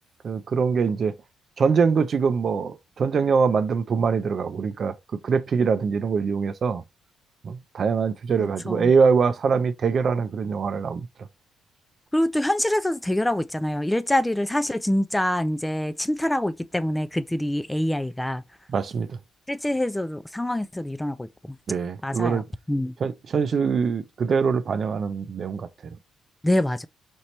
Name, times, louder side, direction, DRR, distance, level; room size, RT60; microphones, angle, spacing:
voice 1, 0.2-1.1 1.6-4.9 5.2-6.8 7.4-11.1 18.7-19.1 21.7-22.4 23.0-25.7, right 5 dB, 50° right, 0.5 m, -23 dB
voice 2, 8.4-8.9 12.1-18.4 19.5-21.3 22.0-22.4 22.7-22.9 26.4-26.9, left 1 dB, 10° left, 0.3 m, -25 dB
5.3 x 2.9 x 3.1 m
cardioid pair, 90°, 0 cm